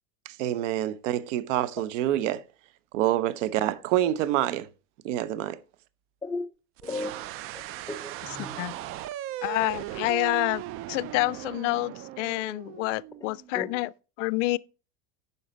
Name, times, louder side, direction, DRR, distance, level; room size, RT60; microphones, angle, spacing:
voice 1, 0.3-2.4 2.9-4.7 5.0-5.6, right 13 dB, 75° right, 0.9 m, -27 dB
voice 2, 6.8-7.3 7.5-8.8 13.5-13.7, left 2 dB, 10° left, 0.6 m, -35 dB
sound 1, 6.8-13.6, right 14 dB, 40° right, 0.4 m, -38 dB
voice 3, 8.3-8.7 9.4-13.9 14.2-14.6, left 21 dB, 75° left, 0.5 m, -28 dB
9.4 x 5.6 x 5.3 m
supercardioid pair, 140°, 37 cm